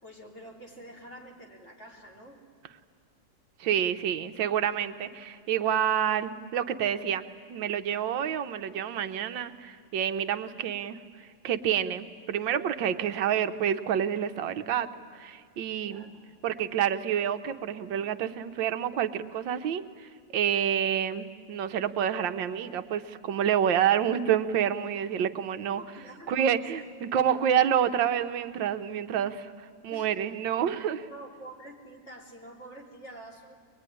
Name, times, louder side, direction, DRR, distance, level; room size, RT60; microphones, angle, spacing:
voice 1, 0.0-2.4 15.8-16.2 25.6-26.6 29.9-30.1 31.1-33.6, right 1 dB, 35° left, -1 dB, 3.6 m, -47 dB
voice 2, 3.6-14.9 15.1-16.1 16.4-25.8 26.3-29.5 29.8-31.1, right 9 dB, 80° right, 9 dB, 1.6 m, -28 dB
23.0 x 21.5 x 9.9 m, 2.1 s
omnidirectional pair, 2.0 m